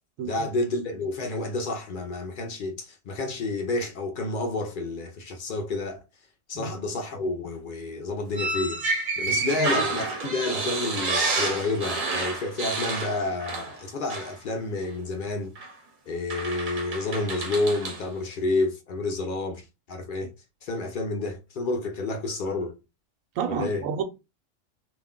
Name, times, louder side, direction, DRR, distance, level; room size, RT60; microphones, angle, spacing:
voice 1, 0.2-6.0 6.5-8.8 9.2-15.5 16.1-20.3 20.6-22.8 23.5-23.8, left 2 dB, 65° left, 0.5 m, -30 dB
voice 2, 6.5-6.9 9.3-9.7 23.4-24.0, right 7 dB, 90° right, 1.0 m, -31 dB
sound 1, 8.3-13.8 14.1-14.3 15.6-15.7 16.3-18.0, right 3 dB, 50° right, 0.7 m, -29 dB
2.4 x 2.1 x 3.6 m
omnidirectional pair, 1.3 m